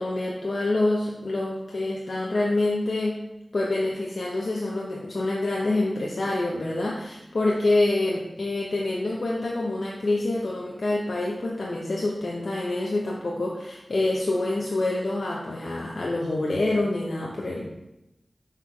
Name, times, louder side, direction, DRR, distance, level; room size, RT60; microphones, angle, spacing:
voice 1, 0.0-3.2 3.5-17.8, left 2 dB, 70° left, -3 dB, 0.8 m, -26 dB
5.9 x 4.5 x 4.5 m, 0.93 s
wide cardioid pair, 50°, 0 cm